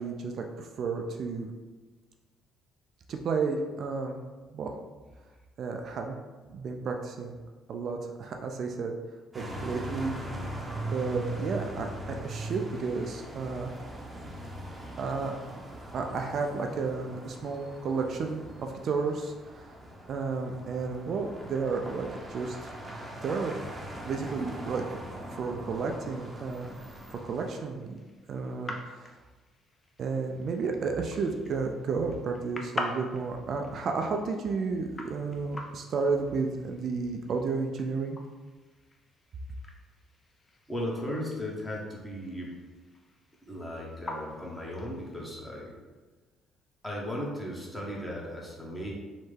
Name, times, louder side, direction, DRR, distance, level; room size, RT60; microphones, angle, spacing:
voice 1, 0.0-1.5 3.1-4.2 4.5-4.7 5.6-6.2 6.5-7.4 7.7-9.0 9.3-10.1 10.9-13.7 15.0-15.3 15.9-19.8 20.1-22.6 23.2-23.6 24.0-24.8 25.3-26.7 27.1-28.0 28.3-29.1 30.0-38.2, right 4 dB, 60° right, 3 dB, 0.3 m, -32 dB
sound 1, 9.3-27.6, right 1 dB, 25° right, 0.7 m, -41 dB
sound 2, 25.7-45.3, left 2 dB, 35° left, 0.4 m, -45 dB
voice 2, 40.7-42.5 43.4-45.7 46.8-49.0, equal, 15° left, -3 dB, 1.0 m, -36 dB
3.2 x 2.1 x 3.2 m, 1.3 s
supercardioid pair, 65°, 0 cm